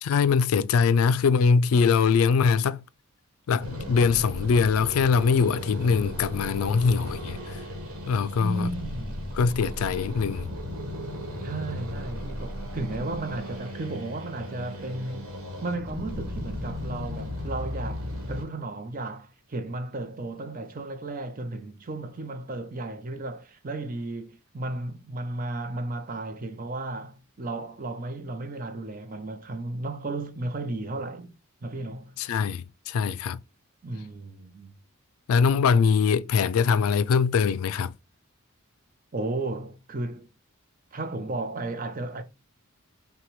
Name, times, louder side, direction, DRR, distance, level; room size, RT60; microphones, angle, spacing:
voice 1, 0.0-2.8 3.5-7.6 8.1-8.7 9.4-10.5 32.2-33.4 35.3-37.9, left 5 dB, 80° left, 0.3 m, -22 dB
sound 1, 3.6-18.5, left 1 dB, 80° right, 1.2 m, -36 dB
voice 2, 8.4-9.3 11.4-15.3 15.6-32.2 33.8-34.7 39.1-40.3 40.9-42.2, right 2 dB, 40° right, 0.5 m, -34 dB
5.8 x 2.2 x 3.0 m
head